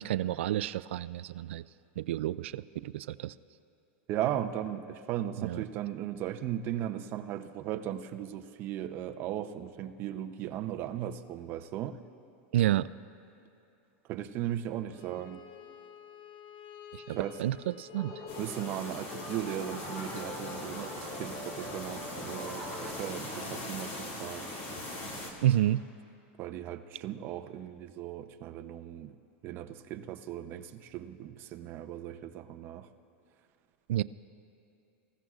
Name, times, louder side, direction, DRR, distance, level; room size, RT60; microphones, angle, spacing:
voice 1, 0.0-1.6 2.0-3.3 5.4-5.6 12.5-12.9 16.9-18.1 25.4-25.8 33.9-34.0, right 13 dB, 85° right, 16 dB, 0.4 m, -30 dB
voice 2, 4.1-12.0 14.1-15.4 17.1-17.4 18.4-24.5 26.4-29.1 29.4-32.9, right 11 dB, 35° right, 7 dB, 0.6 m, -37 dB
Bowed string instrument, 14.9-19.9, left 8 dB, 60° left, 1.0 m, -51 dB
sound 1, 17.9-22.9, left 1 dB, 25° left, 3.2 m, -43 dB
sound 2, 18.3-25.3, left 1 dB, 40° left, 2.2 m, -41 dB
25.5 x 15.5 x 2.4 m, 2.8 s
supercardioid pair, 155°, 6 cm